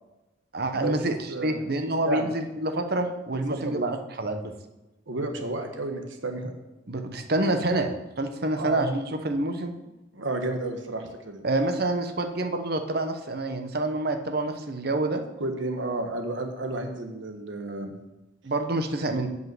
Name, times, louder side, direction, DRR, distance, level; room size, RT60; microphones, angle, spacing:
voice 1, 0.5-4.5 6.9-9.7 11.4-15.2 18.4-19.3, right 2 dB, 55° right, 6 dB, 1.0 m, -27 dB
voice 2, 1.3-1.6 2.1-2.3 3.3-3.9 5.1-6.5 8.5-8.9 10.1-11.4 15.4-17.9, right 2 dB, 85° right, 5 dB, 1.4 m, -31 dB
8.0 x 5.6 x 7.8 m, 1.0 s
head